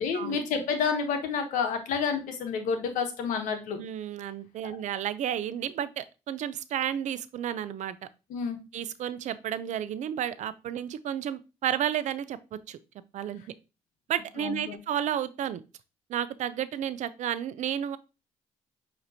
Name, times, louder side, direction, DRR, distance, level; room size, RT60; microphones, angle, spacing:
voice 1, 0.0-3.8 8.3-8.6 14.4-14.7, left 6 dB, 80° left, 6 dB, 1.0 m, -29 dB
voice 2, 3.8-8.0 8.7-12.8 13.1-13.4 14.1-15.6 16.1-18.0, right 10 dB, 65° right, 15 dB, 0.4 m, -32 dB
6.0 x 2.9 x 2.7 m, 0.29 s
supercardioid pair, 65°, 14 cm